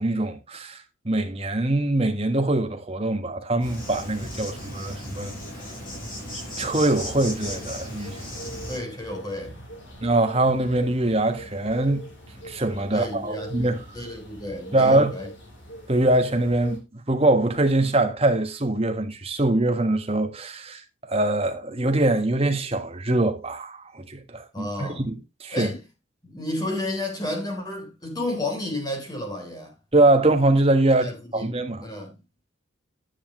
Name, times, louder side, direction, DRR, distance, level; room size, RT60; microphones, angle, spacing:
voice 1, 0.0-5.3 6.3-8.2 10.0-12.0 12.4-13.8 14.7-15.1 15.9-20.8 21.1-25.7 29.9-31.1 31.3-31.8, right 2 dB, 30° right, 1.5 m, -23 dB
Insect, 3.6-8.8, left 1 dB, 45° left, 6.8 m, -36 dB
sound 1, 6.6-16.8, right 1 dB, 60° left, 4.0 m, -42 dB
voice 2, 8.7-9.6 12.9-15.3 24.5-25.1 25.5-25.8 26.2-29.8 30.9-31.5 31.8-32.2, left 1 dB, 20° left, 3.5 m, -32 dB
9.9 x 9.8 x 3.1 m
head